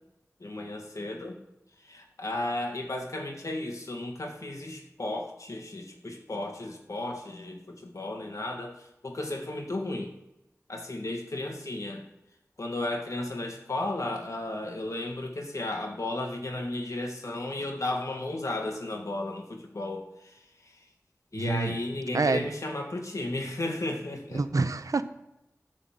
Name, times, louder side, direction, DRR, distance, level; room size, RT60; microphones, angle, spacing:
voice 1, 0.4-1.4 1.8-10.1 10.7-12.0 12.6-20.8 21.3-24.4, left 2 dB, 70° left, 3 dB, 1.7 m, -34 dB
voice 2, 21.3-21.8 22.1-22.5 24.3-25.0, right 3 dB, 80° right, 11 dB, 0.6 m, -27 dB
9.9 x 4.1 x 7.4 m, 0.90 s
wide cardioid pair, 60°, 6 cm